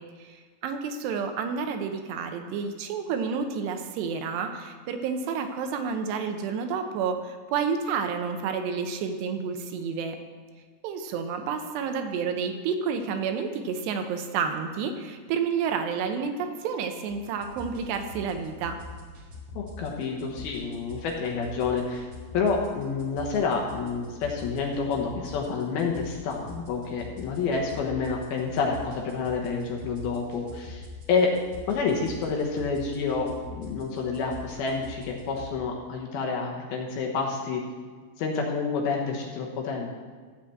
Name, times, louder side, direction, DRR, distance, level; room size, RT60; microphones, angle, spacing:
voice 1, 0.2-10.2 10.8-18.8, right 6 dB, 80° right, 6 dB, 2.9 m, -30 dB
sound 1, 17.1-35.5, left 3 dB, 45° right, 3.1 m, -44 dB
voice 2, 19.5-22.1 22.3-31.3 31.7-37.6 38.2-40.0, left 4 dB, 70° left, 0 dB, 2.8 m, -28 dB
14.5 x 5.0 x 7.6 m, 1.5 s
omnidirectional pair, 5.0 m